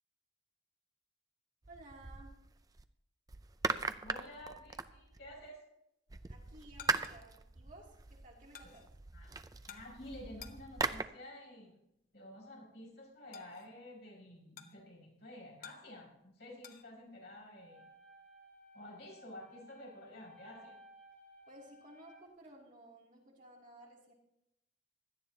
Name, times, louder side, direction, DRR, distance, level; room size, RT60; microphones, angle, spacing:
sound 1, 1.6-2.8 3.3-5.5 6.1-11.0, right 4 dB, 20° right, 0.4 m, -40 dB
voice 1, 1.7-2.4 6.3-8.8 21.5-24.1, right 1 dB, 45° right, -2 dB, 2.7 m, -56 dB
voice 2, 4.0-5.6 8.6-8.7 9.1-9.3 9.7-11.7 12.1-17.8 18.7-20.8, left 1 dB, 70° left, -2 dB, 5.4 m, -51 dB
sound 2, 6.7-16.9, left 8 dB, 55° left, 1.0 m, -58 dB
sound 3, 17.5-22.5, equal, 10° left, 4.4 m, -59 dB
17.0 x 11.5 x 2.8 m, 0.82 s
head